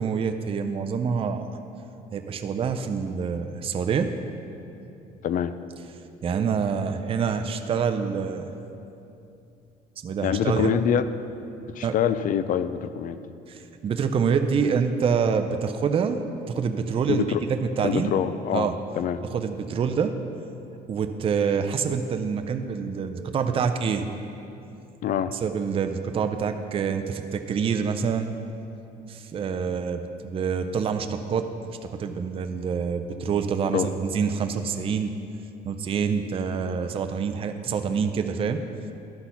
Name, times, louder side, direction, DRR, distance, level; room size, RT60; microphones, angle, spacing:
voice 1, 0.0-1.6 2.1-4.1 6.2-8.5 10.0-10.7 11.8-11.9 13.5-16.2 16.5-18.1 18.5-18.8 19.2-20.2 20.9-24.3 25.3-28.3 29.1-31.5 31.8-35.1 35.6-38.6, right 6 dB, 35° right, 7 dB, 0.4 m, -26 dB
voice 2, 5.2-5.5 10.2-11.1 11.7-13.2 17.1-17.4 17.8-18.7 19.0-19.2 25.0-25.3 33.7-33.9, left 9 dB, 50° left, 13 dB, 0.4 m, -25 dB
11.5 x 4.0 x 5.6 m, 2.7 s
cardioid pair, 110°, 17 cm